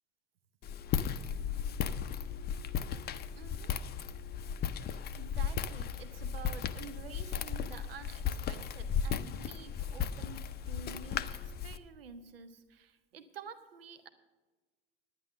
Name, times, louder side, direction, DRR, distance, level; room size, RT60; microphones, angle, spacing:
Walk footsteps, 0.6-11.8, left 8 dB, 35° left, 0.6 m, -36 dB
voice 1, 3.1-3.7 4.9-14.1, right 5 dB, 75° right, 10 dB, 0.8 m, -50 dB
10.5 x 9.7 x 6.5 m, 1.3 s
figure-of-eight pair, 65°, 29 cm